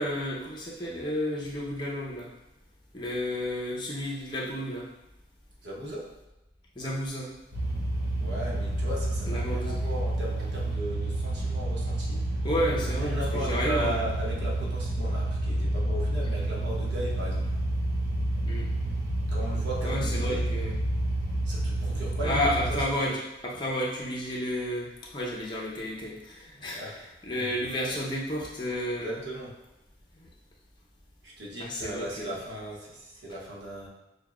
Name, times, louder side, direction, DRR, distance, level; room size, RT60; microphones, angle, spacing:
voice 1, 0.0-2.3 2.9-4.9 6.8-7.3 9.3-9.8 12.4-14.0 18.5-18.7 19.8-20.8 22.2-26.8 27.2-29.2 30.1-30.3 31.6-32.3, equal, 25° left, -3 dB, 0.7 m, -31 dB
voice 2, 5.6-6.1 8.2-12.3 12.8-17.5 19.3-20.5 21.4-23.0 26.5-27.0 27.3-27.5 27.9-28.0 29.0-29.6 31.2-33.9, right 1 dB, 80° right, -4 dB, 0.9 m, -37 dB
sound 1, 7.5-22.8, right 1 dB, 60° right, 1.2 m, -29 dB
6.5 x 2.2 x 2.3 m, 0.98 s
head